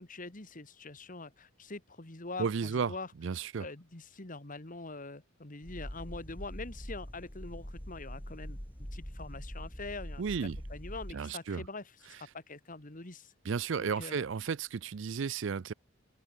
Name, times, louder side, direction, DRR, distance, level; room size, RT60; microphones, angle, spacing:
voice 1, 0.0-3.1 3.6-13.3 13.8-14.2, left 3 dB, 40° left, 2.0 m, -44 dB
voice 2, 2.4-2.9 3.2-3.6 10.2-10.6 11.1-11.6 13.5-15.7, right 6 dB, 65° right, 0.5 m, -33 dB
sound 1, 5.6-11.1, equal, 10° left, 1.9 m, -43 dB
open air
head